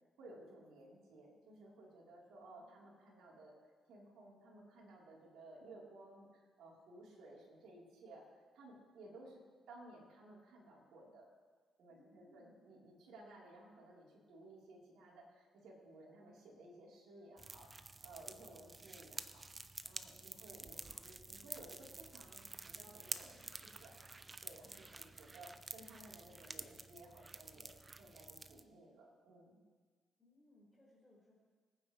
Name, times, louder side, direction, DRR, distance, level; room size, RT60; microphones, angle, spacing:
voice 1, 0.2-3.5 3.9-8.2 8.5-9.4 9.7-11.3 11.8-19.5 19.8-24.1 24.4-29.6, right 2 dB, 75° right, -5 dB, 3.8 m, -57 dB
voice 2, 2.5-3.2 11.9-12.6 30.2-31.3, left 1 dB, 10° left, -9 dB, 4.9 m, -68 dB
sound 1, 17.4-28.6, right 3 dB, 25° right, 0.6 m, -50 dB
23.0 x 9.4 x 3.3 m, 1.5 s
cardioid pair, 90°, 0 cm